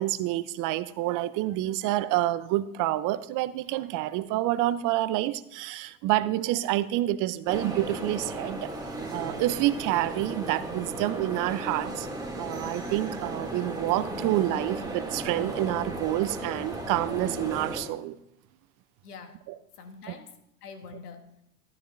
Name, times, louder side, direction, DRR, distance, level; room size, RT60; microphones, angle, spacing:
voice 1, 0.0-8.7 9.1-12.1 12.4-18.2 19.5-19.6, right 15 dB, 45° right, 0.6 m, -28 dB
sound 1, 7.5-17.8, right 1 dB, 10° right, 2.5 m, -35 dB
voice 2, 19.0-19.4 19.8-21.4, left 5 dB, 80° left, 1.5 m, -45 dB
13.0 x 12.5 x 2.6 m
hypercardioid pair, 95°, 45 cm